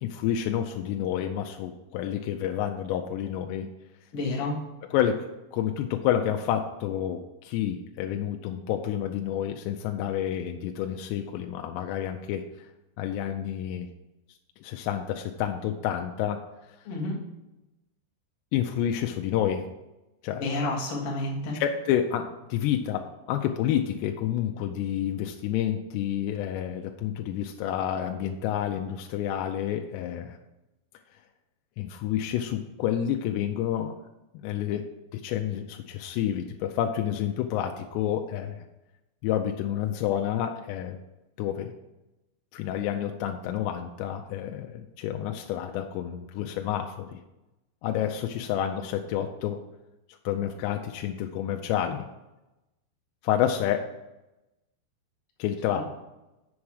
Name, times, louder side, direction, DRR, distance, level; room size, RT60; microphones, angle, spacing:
voice 1, 0.0-3.7 4.9-12.5 13.0-13.9 14.6-16.4 18.5-19.6 20.2-20.5 21.5-30.4 31.8-34.0 34.3-38.6 39.2-41.0 41.4-41.7 42.5-47.2 47.8-49.6 50.3-52.1 53.2-53.9 55.4-55.8, left 10 dB, 80° left, 4 dB, 2.6 m, -29 dB
voice 2, 4.1-4.6 16.9-17.2 20.4-21.6 55.7-55.8, left 2 dB, 50° left, -3 dB, 1.9 m, -30 dB
7.2 x 7.1 x 4.8 m, 0.97 s
omnidirectional pair, 5.1 m